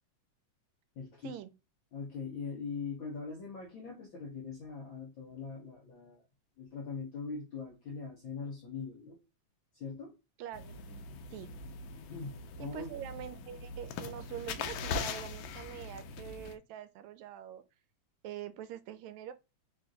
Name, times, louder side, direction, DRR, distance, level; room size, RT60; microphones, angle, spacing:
voice 1, 1.0-1.3 1.9-6.2 6.6-9.2 9.7-10.1 12.1-12.9, left 5 dB, 70° left, 1.2 m, -41 dB
voice 2, 10.4-11.0 11.3-11.5 12.6-17.6 18.2-19.3, right 10 dB, 80° right, 1.8 m, -44 dB
sound 1, 10.5-16.5, left 4 dB, 85° left, 1.3 m, -41 dB
4.5 x 2.5 x 3.7 m
omnidirectional pair, 3.3 m